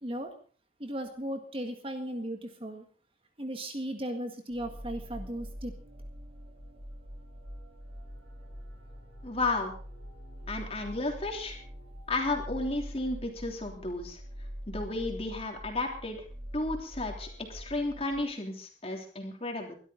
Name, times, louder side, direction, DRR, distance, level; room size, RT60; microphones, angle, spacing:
voice 1, 0.0-0.3 0.8-2.8 3.4-5.7, right 1 dB, 30° right, 6 dB, 1.7 m, -36 dB
sound 1, 4.5-18.3, equal, 85° right, 4.8 m, -44 dB
voice 2, 9.2-9.7 10.5-11.6 12.1-14.2 14.7-16.2 16.5-19.7, left 2 dB, 30° left, 3 dB, 3.2 m, -33 dB
21.5 x 12.5 x 4.0 m, 0.41 s
head